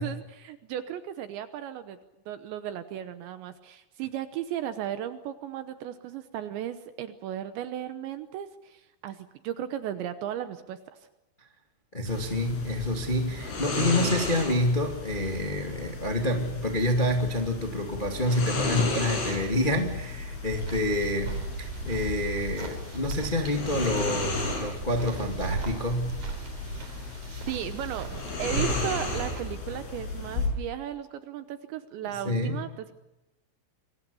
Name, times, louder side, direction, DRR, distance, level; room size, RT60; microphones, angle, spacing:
voice 1, 0.0-2.0 2.3-11.1 20.8-20.9 27.5-28.1 28.4-32.9, right 11 dB, 75° right, 10 dB, 3.0 m, -35 dB
voice 2, 11.9-26.2 32.2-32.6, left 1 dB, 55° left, 3 dB, 0.5 m, -28 dB
sound 1, 12.1-30.5, left 3 dB, 75° left, 9.2 m, -34 dB
sound 2, 20.4-29.4, right 4 dB, 40° right, 4.5 m, -37 dB
28.0 x 23.5 x 7.0 m, 0.97 s
omnidirectional pair, 5.7 m